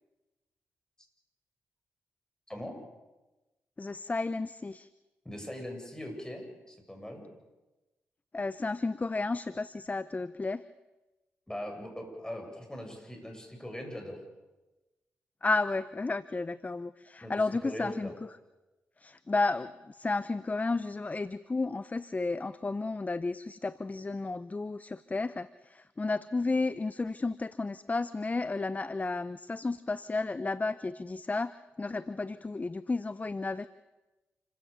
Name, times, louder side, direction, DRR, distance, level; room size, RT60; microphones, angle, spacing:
voice 1, 3.8-4.9 8.3-10.6 15.4-18.3 19.0-33.7, left 3 dB, 30° left, 16 dB, 0.7 m, -32 dB
voice 2, 5.2-7.2 11.5-14.2 17.2-18.1, left 1 dB, 10° left, 3 dB, 7.9 m, -41 dB
28.0 x 16.0 x 6.9 m, 1.1 s
supercardioid pair, 45°, 5 cm